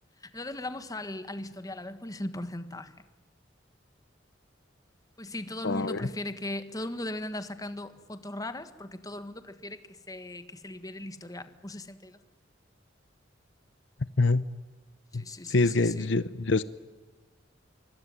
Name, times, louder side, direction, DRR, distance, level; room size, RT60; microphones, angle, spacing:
voice 1, 0.2-2.9 5.2-12.2 15.1-16.1, left 1 dB, 20° left, 10 dB, 1.6 m, -38 dB
voice 2, 5.6-6.1 14.2-14.4 15.1-16.6, left 3 dB, 70° left, 15 dB, 0.8 m, -25 dB
25.5 x 24.5 x 9.7 m, 1.3 s
head